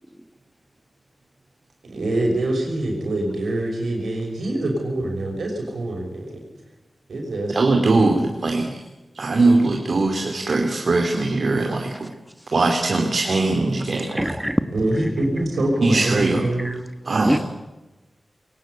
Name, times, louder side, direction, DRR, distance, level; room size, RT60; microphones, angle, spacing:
voice 1, 1.8-6.4 7.1-7.5 8.0-8.1 14.7-16.8, right 1 dB, 85° right, 1 dB, 6.3 m, -24 dB
voice 2, 7.5-8.7 9.1-12.1 12.5-14.2 15.8-16.5 17.1-17.4, right 3 dB, 65° right, 3 dB, 2.6 m, -20 dB
voice 3, 13.9-14.6 14.9-15.1 16.6-16.8 17.2-17.4, equal, 5° right, 9 dB, 1.5 m, -24 dB
22.0 x 18.0 x 8.6 m, 1.1 s
cardioid pair, 50°, 0 cm